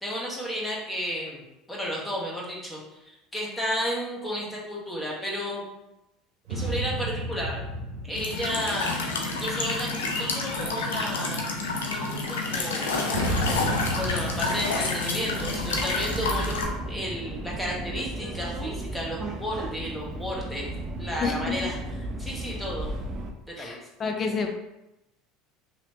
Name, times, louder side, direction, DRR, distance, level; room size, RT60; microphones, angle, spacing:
voice 1, 0.0-5.6 6.5-7.6 8.0-8.9 9.4-11.5 11.9-13.0 14.0-20.7 21.0-21.8 22.2-22.9 23.6-23.8, equal, 10° left, -4 dB, 1.1 m, -33 dB
sound 1, 6.5-10.2 13.1-16.9, right 1 dB, 80° right, 0.7 m, -33 dB
Walk footsteps / Chirp tweet / Stream, 8.2-16.6, left 3 dB, 85° left, 0.5 m, -29 dB
Subway metro underground, 15.3-23.3, right 1 dB, 40° right, 0.5 m, -34 dB
voice 2, 21.2-21.5 23.6-24.5, left 4 dB, 35° left, 4 dB, 0.5 m, -29 dB
3.0 x 2.9 x 2.9 m, 0.93 s
hypercardioid pair, 80°, 0 cm